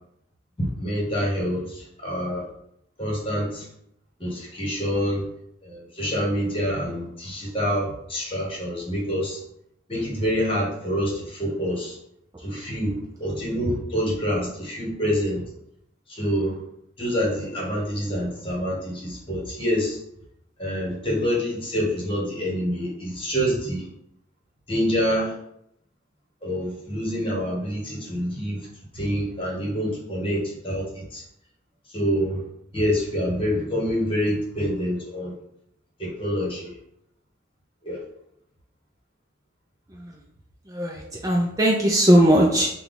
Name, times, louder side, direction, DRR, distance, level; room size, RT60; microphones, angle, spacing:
voice 1, 0.6-2.4 3.0-3.7 4.2-5.3 5.6-9.4 9.9-12.0 12.4-15.4 16.1-16.6 17.0-20.0 20.6-23.9 24.7-25.3 26.4-28.7 28.9-31.2 31.9-32.4 32.7-35.3 36.0-36.7 37.8-38.0, equal, 30° left, -3 dB, 1.4 m, -26 dB
voice 2, 40.7-42.7, right 1 dB, 20° right, -2 dB, 0.4 m, -19 dB
5.7 x 2.3 x 3.7 m, 0.74 s
head